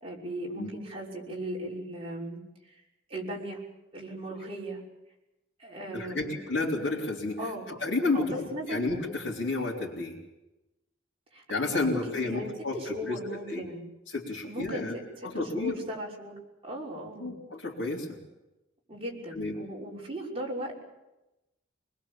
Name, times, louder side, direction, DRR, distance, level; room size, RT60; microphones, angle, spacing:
voice 1, 0.0-2.4 2.7-2.8 3.1-3.6 3.9-4.8 5.6-6.4 7.4-7.7 8.1-8.9 11.3-12.0 12.2-13.8 14.5-16.3 16.6-17.3 18.9-20.8, equal, 30° right, -3 dB, 5.9 m, -38 dB
voice 2, 5.9-7.4 7.7-10.2 11.5-13.6 14.1-14.9 15.2-15.8 17.2-18.2 19.3-19.6, left 3 dB, 65° left, -6 dB, 3.7 m, -31 dB
25.5 x 20.5 x 7.3 m, 0.97 s
head